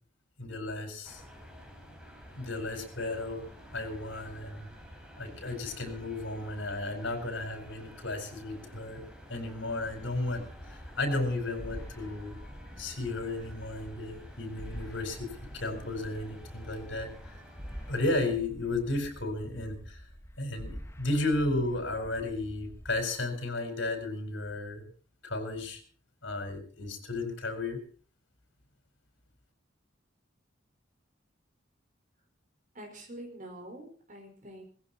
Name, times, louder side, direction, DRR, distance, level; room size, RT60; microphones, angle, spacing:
voice 1, 0.4-1.2 2.3-3.4 3.7-4.7 5.2-9.0 9.3-12.4 12.8-15.3 15.5-17.3 17.9-20.0 20.4-24.8 25.2-25.8 26.2-27.8, left 2 dB, 75° left, 6 dB, 4.9 m, -34 dB
sound 1, 1.0-18.1, equal, 5° right, 3.9 m, -50 dB
sound 2, 9.8-23.1, equal, 15° left, 1.3 m, -47 dB
voice 2, 32.7-34.6, right 1 dB, 45° right, 4 dB, 5.0 m, -45 dB
18.5 x 15.5 x 4.3 m, 0.42 s
head